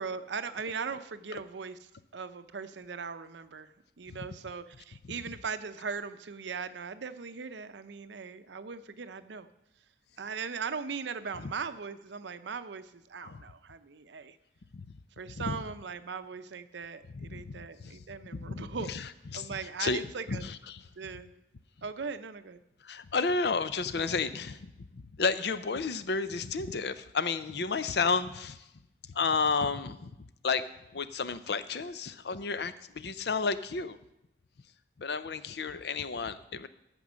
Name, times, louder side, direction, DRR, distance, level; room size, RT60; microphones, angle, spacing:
voice 1, 0.0-1.8 2.1-9.5 10.2-14.4 15.2-18.9 19.3-20.4 21.0-21.3 21.8-22.6, right 5 dB, 75° right, 12 dB, 0.6 m, -39 dB
voice 2, 17.1-20.0 20.3-20.8 22.8-28.7 29.0-30.1 30.4-34.0 35.0-36.7, left 4 dB, 65° left, 13 dB, 0.5 m, -32 dB
14.0 x 5.3 x 6.3 m, 0.88 s
head